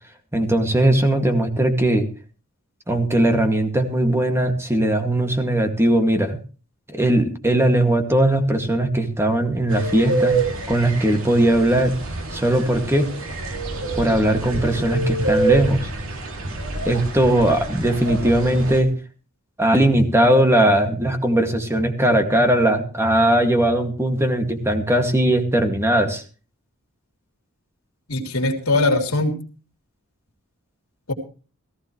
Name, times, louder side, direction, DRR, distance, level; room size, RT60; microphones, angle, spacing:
voice 1, 0.3-2.1 2.9-6.4 6.9-10.3 10.7-11.9 12.3-13.1 13.9-15.8 16.8-18.9 19.6-26.2, right 1 dB, 10° right, 5 dB, 2.2 m, -19 dB
sound 1, 9.7-18.8, right 3 dB, 65° right, 2.7 m, -27 dB
voice 2, 28.1-29.3 31.1-31.2, left 2 dB, 75° left, 4 dB, 3.4 m, -21 dB
18.0 x 15.0 x 3.2 m, 0.37 s
head